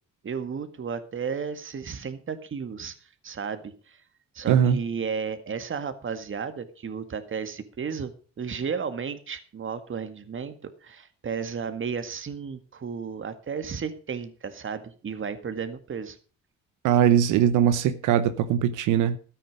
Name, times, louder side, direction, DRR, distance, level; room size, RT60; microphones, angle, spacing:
voice 1, 0.2-2.9 3.2-4.0 4.3-10.6 10.8-16.2, right 6 dB, 40° right, 1.9 m, -33 dB
voice 2, 4.5-4.8 16.8-19.2, right 9 dB, 90° right, 0.9 m, -21 dB
13.0 x 9.2 x 5.2 m
cardioid pair, 90°, 30 cm